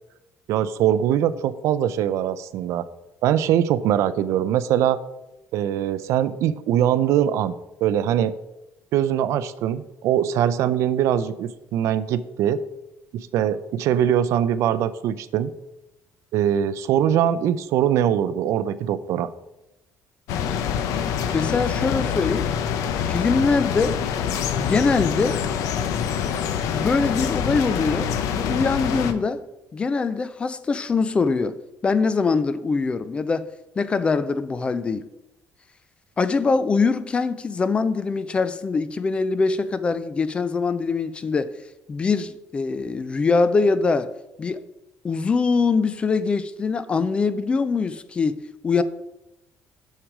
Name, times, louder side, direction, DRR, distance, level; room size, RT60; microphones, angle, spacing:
voice 1, 0.5-2.9 3.2-5.0 5.5-7.6 7.8-8.3 8.9-12.6 13.1-15.5 16.3-19.3, right 10 dB, 65° right, 0.4 m, -22 dB
sound 1, 20.3-29.1, left 8 dB, 80° left, 0.7 m, -25 dB
voice 2, 21.3-22.5 23.1-24.0 24.6-25.4 26.7-29.5 29.7-33.5 33.8-35.1 36.2-41.6 41.9-44.1 44.4-44.6 45.0-48.8, left 4 dB, 20° left, 0.3 m, -23 dB
6.5 x 6.1 x 4.8 m
cardioid pair, 175°, 5 cm